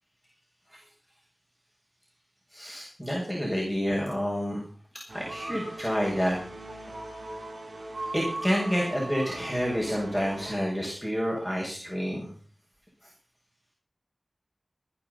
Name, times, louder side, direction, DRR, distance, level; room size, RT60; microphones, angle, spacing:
voice 1, 2.5-4.6 5.1-6.4 6.7-6.8 8.1-12.3, equal, ahead, -3 dB, 7.7 m, -29 dB
sound 1, 5.1-10.6, right 2 dB, 70° right, 4.2 m, -39 dB
18.0 x 11.0 x 5.7 m, 0.41 s
wide cardioid pair, 45°, 0 cm